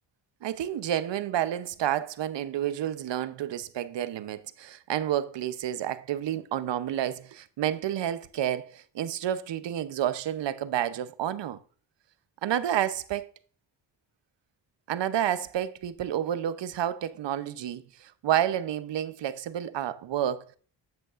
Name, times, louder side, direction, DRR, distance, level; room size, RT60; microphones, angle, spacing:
voice 1, 0.4-11.6 12.4-13.3 14.9-20.6, right 11 dB, 65° right, 0.8 m, -30 dB
9.3 x 7.8 x 2.5 m
cardioid pair, 70°, 46 cm